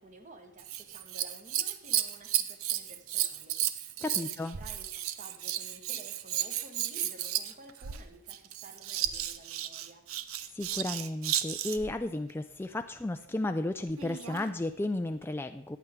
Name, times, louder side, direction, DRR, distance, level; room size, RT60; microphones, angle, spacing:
voice 1, 0.0-10.0, right 2 dB, 40° right, 5 dB, 1.4 m, -53 dB
Scissors, 0.6-11.9 13.9-14.5 15.2-15.3, right 12 dB, 90° right, 0.6 m, -33 dB
voice 2, 4.0-4.6 10.5-15.8, left 2 dB, 10° left, 7 dB, 0.3 m, -33 dB
14.5 x 9.3 x 3.6 m, 0.73 s
head